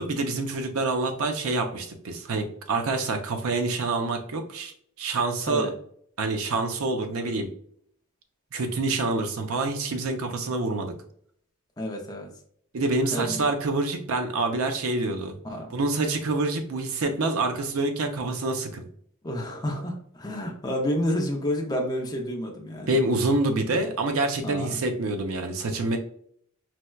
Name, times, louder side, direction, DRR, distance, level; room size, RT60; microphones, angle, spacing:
voice 1, 0.0-4.7 5.0-5.7 6.2-7.5 8.5-10.9 12.7-15.3 15.7-18.8 22.9-26.0, right 2 dB, 70° right, 6 dB, 0.5 m, -26 dB
voice 2, 11.8-12.3 13.1-13.4 15.4-15.7 19.2-23.0 24.4-24.8, equal, 20° left, 2 dB, 0.5 m, -30 dB
4.2 x 2.1 x 2.2 m, 0.63 s
head